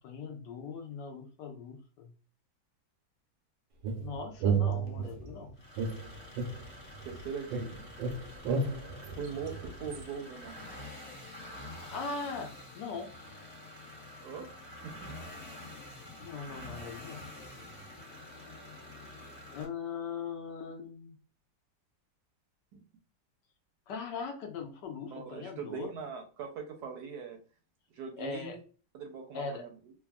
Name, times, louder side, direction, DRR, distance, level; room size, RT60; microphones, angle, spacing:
voice 1, 0.0-2.1 4.0-5.5 11.8-13.1 16.2-17.3 19.0-19.2 19.5-21.1 23.9-25.9 28.2-28.6 29.3-29.6, left 5 dB, 75° left, 4 dB, 1.2 m, -40 dB
sound 1, 3.8-5.3 5.8-7.2 7.5-10.0, right 5 dB, 90° right, 1.3 m, -32 dB
sound 2, 5.6-19.6, left 1 dB, 45° left, 0.7 m, -48 dB
voice 2, 7.0-7.9 8.2-8.3 9.2-10.6 14.2-14.5 14.8-15.2 15.6-15.8 16.6-16.7 22.7-22.8 25.1-27.4 27.9-28.6 28.9-29.9, right 6 dB, 70° right, 3 dB, 1.0 m, -41 dB
3.4 x 2.2 x 2.3 m, 0.37 s
omnidirectional pair, 2.0 m